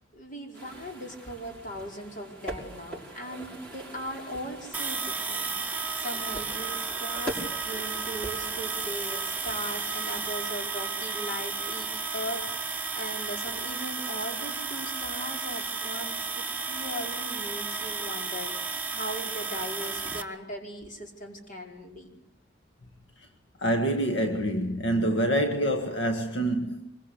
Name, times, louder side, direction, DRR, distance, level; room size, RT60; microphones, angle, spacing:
voice 1, 0.0-22.2, equal, 45° left, 5.2 m, -39 dB
sound 1, 0.5-10.3, right 1 dB, 5° left, 5.8 m, -43 dB
sound 2, 4.7-20.2, right 4 dB, 10° right, 1.5 m, -33 dB
voice 2, 23.6-26.9, right 1 dB, 75° left, 1.8 m, -26 dB
25.0 x 23.0 x 8.5 m
head